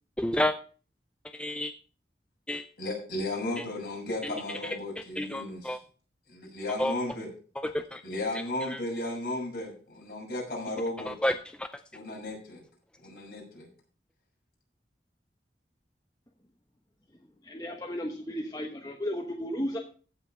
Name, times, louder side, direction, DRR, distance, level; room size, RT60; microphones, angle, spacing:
voice 1, 0.2-0.5 1.3-1.7 2.5-2.7 3.6-3.7 4.2-4.3 4.6-4.8 5.2-5.8 6.8-6.9 7.6-8.0 8.7-8.8 11.1-11.7, left 1 dB, 5° left, 8 dB, 0.4 m, -30 dB
voice 2, 2.8-5.8 6.3-7.3 8.0-11.1 11.9-12.6 13.0-13.7, left 1 dB, 55° left, -2 dB, 6.6 m, -35 dB
voice 3, 17.4-19.8, equal, 20° left, 2 dB, 1.1 m, -34 dB
15.5 x 5.7 x 5.5 m, 0.40 s
head